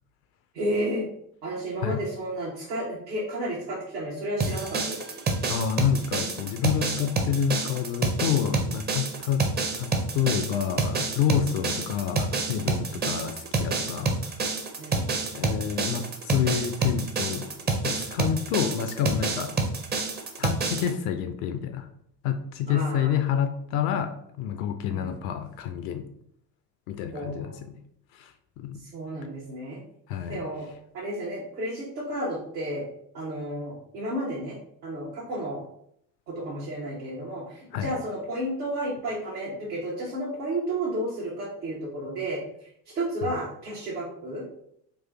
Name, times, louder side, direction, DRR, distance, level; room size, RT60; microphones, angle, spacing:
voice 1, 0.5-1.1 1.4-5.0 13.0-13.2 14.8-15.1 22.7-23.2 24.9-25.1 27.1-27.6 28.8-29.8 30.3-30.7 30.9-32.8 33.1-34.6 34.8-35.7 36.3-42.4 42.9-44.4, right 1 dB, 75° right, -5 dB, 1.1 m, -32 dB
sound 1, 4.4-20.9, right 3 dB, 20° right, 0.6 m, -28 dB
voice 2, 5.5-9.5 9.8-14.1 15.3-17.5 17.8-19.6 20.4-21.9 22.2-26.1 26.9-27.8 28.1-28.8 30.1-30.4 37.7-37.9 43.2-43.4, left 8 dB, 45° left, 8 dB, 0.4 m, -28 dB
4.0 x 2.5 x 3.7 m, 0.70 s
figure-of-eight pair, 55°, 50 cm